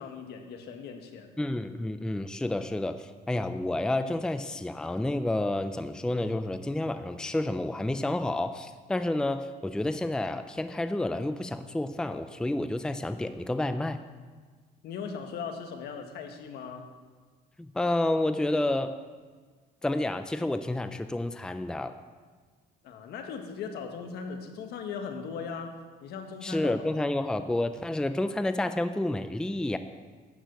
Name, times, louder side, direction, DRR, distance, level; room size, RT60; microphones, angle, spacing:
voice 1, 0.0-1.3 14.8-16.9 22.8-27.1, left 5 dB, 75° left, 5 dB, 1.6 m, -39 dB
voice 2, 1.4-14.0 17.6-19.0 19.8-22.0 26.4-29.8, left 1 dB, 5° left, 10 dB, 0.5 m, -30 dB
12.5 x 6.2 x 8.2 m, 1.5 s
cardioid pair, 110°, 17 cm